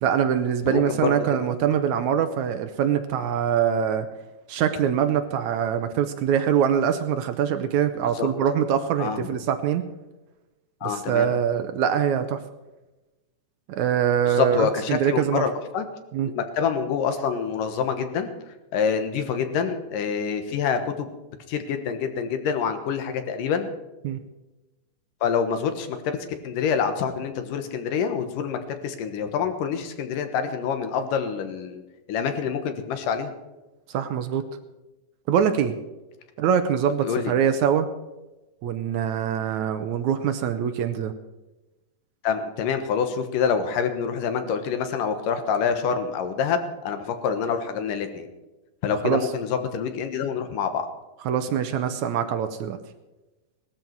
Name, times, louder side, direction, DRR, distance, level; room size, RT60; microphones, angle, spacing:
voice 1, 0.0-4.1 4.5-9.8 10.8-12.4 13.7-15.4 16.1-16.3 24.0-24.2 33.9-34.5 35.3-35.8 36.4-37.9 38.6-41.1 49.0-49.3 51.3-52.8, right 8 dB, 75° right, 9 dB, 2.0 m, -23 dB
voice 2, 0.7-1.1 8.1-8.3 9.0-9.2 10.8-11.3 14.3-15.8 16.3-18.3 18.7-21.1 21.5-23.7 25.2-26.2 26.4-31.8 32.1-33.3 37.0-37.3 42.2-48.3 48.8-50.9, left 6 dB, 85° left, 8 dB, 2.9 m, -26 dB
18.5 x 13.0 x 4.6 m, 1.1 s
omnidirectional pair, 3.8 m